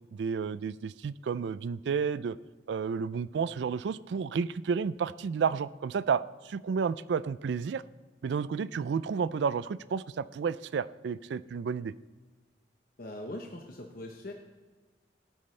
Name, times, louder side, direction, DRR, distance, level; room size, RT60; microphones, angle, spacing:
voice 1, 0.1-2.4 2.7-7.8 8.2-11.9, right 6 dB, 75° right, 17 dB, 0.3 m, -31 dB
voice 2, 13.0-14.3, left 1 dB, 55° left, 2 dB, 1.0 m, -41 dB
17.5 x 8.9 x 3.3 m, 1.3 s
head